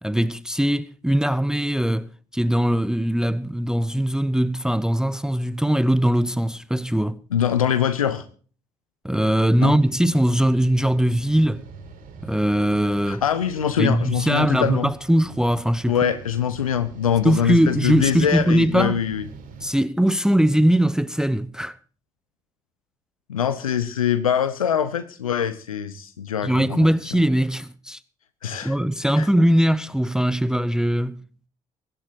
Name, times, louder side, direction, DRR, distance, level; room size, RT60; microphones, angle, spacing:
voice 1, 0.0-7.2 9.0-11.6 12.2-13.2 13.8-16.0 17.2-19.0 19.6-21.8 26.4-28.0 28.6-31.2, right 1 dB, 5° right, 0.8 m, -21 dB
voice 2, 7.3-8.2 9.6-9.8 13.1-14.9 15.9-19.2 23.3-26.9 28.4-28.7 29.2-29.3, left 8 dB, 85° left, 0.9 m, -23 dB
sound 1, 9.1-19.7, right 4 dB, 55° right, 4.7 m, -43 dB
24.0 x 12.5 x 2.9 m
figure-of-eight pair, 50°, 18 cm